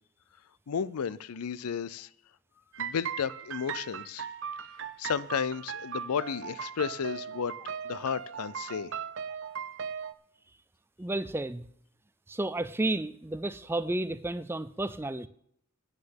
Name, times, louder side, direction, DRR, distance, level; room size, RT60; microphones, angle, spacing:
voice 1, 0.7-2.1 2.8-4.3 5.0-8.9, left 7 dB, 85° left, 0.5 m, -33 dB
sound 1, 2.7-10.1, right 7 dB, 55° right, 0.6 m, -38 dB
voice 2, 11.0-11.7 12.3-15.3, right 2 dB, 10° right, 0.3 m, -32 dB
9.2 x 6.5 x 8.8 m
head